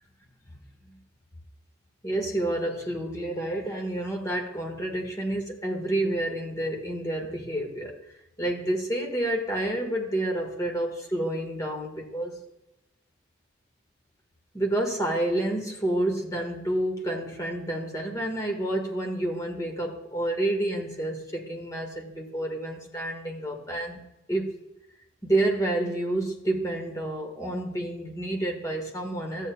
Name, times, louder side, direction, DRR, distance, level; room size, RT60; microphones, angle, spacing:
voice 1, 2.0-8.0 8.4-12.4 14.5-24.0 24.3-24.6 25.2-29.5, right 1 dB, 20° left, 2 dB, 1.5 m, -29 dB
13.5 x 8.4 x 2.3 m, 0.89 s
head